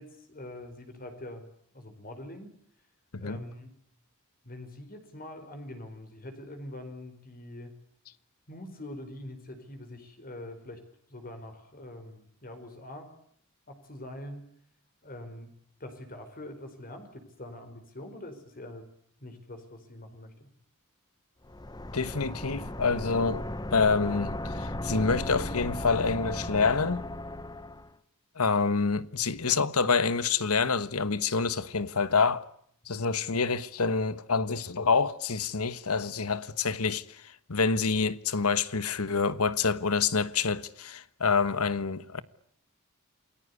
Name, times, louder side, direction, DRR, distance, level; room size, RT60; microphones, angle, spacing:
voice 1, 0.0-1.5 1.7-2.5 3.2-3.7 4.4-7.7 8.5-10.8 11.1-13.1 13.7-14.5 15.0-15.5 15.8-18.9 19.2-20.5, left 1 dB, 40° left, 4.7 m, -44 dB
sound 1, 21.4-27.9, left 1 dB, 20° left, 1.2 m, -36 dB
voice 2, 21.9-23.4 23.7-27.1 28.4-32.5 32.9-42.2, left 4 dB, 85° left, 1.4 m, -27 dB
29.0 x 20.0 x 8.2 m
head